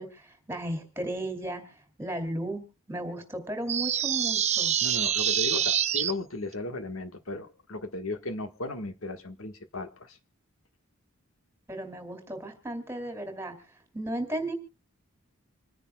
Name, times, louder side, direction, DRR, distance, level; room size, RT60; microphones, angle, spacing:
voice 1, 0.0-2.6 2.9-4.7 11.7-13.5 13.9-14.5, right 1 dB, 10° right, 6 dB, 2.7 m, -35 dB
sound 1, 3.7-6.1, right 9 dB, 30° right, 0.6 m, -26 dB
voice 2, 4.8-10.2, left 2 dB, 75° left, 8 dB, 1.5 m, -36 dB
27.0 x 10.0 x 2.3 m, 0.31 s
head